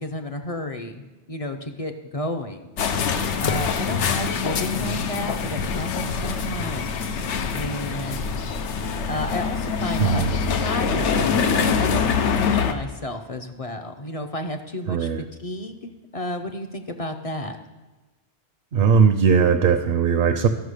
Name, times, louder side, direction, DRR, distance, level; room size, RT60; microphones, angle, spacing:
voice 1, 0.0-2.7 3.4-7.3 7.5-8.3 9.1-11.4 11.8-15.1 15.4-17.6, left 1 dB, 40° left, 5 dB, 0.6 m, -32 dB
sound 1, 2.8-12.7, left 6 dB, 85° left, 1.0 m, -24 dB
voice 2, 10.0-10.3 14.9-15.2 18.7-20.5, right 6 dB, 65° right, 8 dB, 0.8 m, -19 dB
12.5 x 5.7 x 6.4 m, 1.2 s
omnidirectional pair, 1.1 m